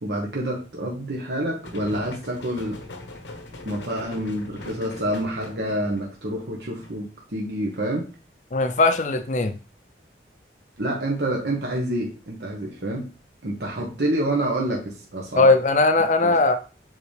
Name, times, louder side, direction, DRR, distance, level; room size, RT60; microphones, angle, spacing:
voice 1, 0.0-2.8 3.6-8.1 10.8-13.1 13.4-15.5 16.2-16.3, right 1 dB, 65° right, -2 dB, 1.2 m, -27 dB
sound 1, 1.6-7.0, left 2 dB, 85° left, 1.0 m, -41 dB
voice 2, 8.5-9.6 15.4-16.6, left 3 dB, 40° left, 8 dB, 0.5 m, -19 dB
7.8 x 3.6 x 3.3 m, 0.34 s
head